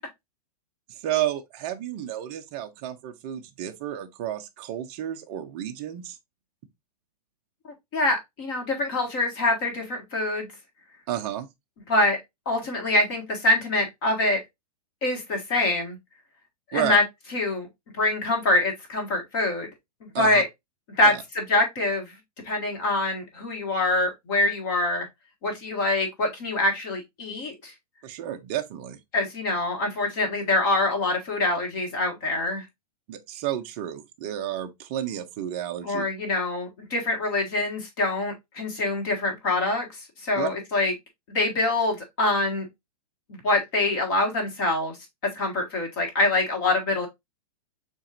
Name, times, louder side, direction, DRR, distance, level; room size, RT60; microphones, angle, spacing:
voice 1, 1.0-6.2 11.1-11.5 16.7-17.0 20.1-20.4 21.0-21.2 28.0-29.0 33.1-36.0 40.4-40.5, right 11 dB, 20° right, 0.3 m, -31 dB
voice 2, 7.9-10.5 11.9-12.2 12.4-14.4 15.0-16.0 16.7-17.0 17.3-17.7 18.0-19.7 20.1-20.5 20.9-22.1 22.4-25.1 25.4-27.7 29.1-32.6 35.8-39.9 40.2-40.9 41.3-42.7 43.3-45.0 45.2-47.1, left 2 dB, 35° left, 1.7 m, -25 dB
7.1 x 2.8 x 2.5 m
supercardioid pair, 175°, 20 cm